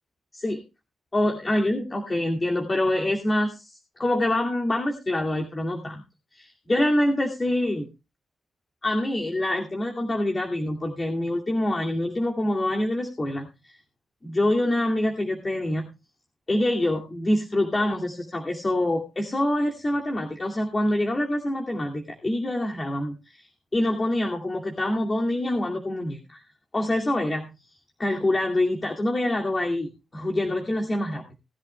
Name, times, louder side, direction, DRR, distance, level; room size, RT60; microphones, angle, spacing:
voice 1, 0.3-0.6 1.1-6.0 6.3-7.9 8.8-13.8 14.2-15.9 16.5-23.5 23.7-26.4 26.7-27.5 28.0-31.2, left 1 dB, 35° left, 1 dB, 2.4 m, -25 dB
19.5 x 11.0 x 2.3 m, 0.27 s
supercardioid pair, 50°, 0 cm